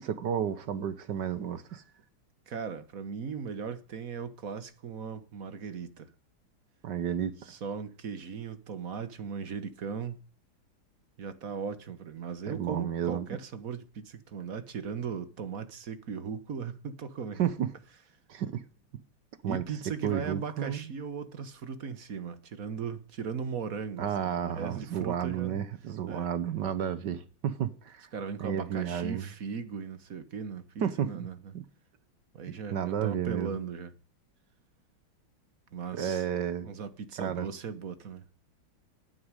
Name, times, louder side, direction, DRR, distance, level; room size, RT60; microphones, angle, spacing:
voice 1, 0.0-1.8 6.8-7.5 12.5-13.3 17.4-17.7 18.3-18.6 19.4-19.6 20.0-20.9 24.0-28.1 28.4-29.2 30.8-31.3 31.5-31.6 32.7-33.6 35.9-36.7 37.2-37.5, right 9 dB, 60° right, 1.4 m, -32 dB
voice 2, 2.5-6.1 7.5-10.2 11.2-17.5 19.4-25.6 26.1-26.3 28.1-31.4 32.3-33.9 35.7-36.2 36.6-38.2, right 6 dB, 45° right, 1.4 m, -38 dB
11.0 x 9.5 x 9.8 m
omnidirectional pair, 2.3 m